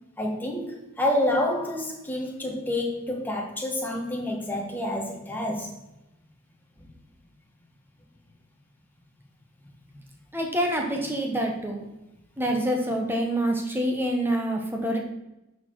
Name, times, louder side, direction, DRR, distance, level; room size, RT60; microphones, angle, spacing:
voice 1, 0.2-5.7, left 1 dB, 10° left, 0 dB, 1.2 m, -28 dB
voice 2, 10.3-11.8 12.4-15.0, right 1 dB, 10° right, 1 dB, 1.1 m, -26 dB
10.0 x 4.6 x 4.6 m, 0.94 s
head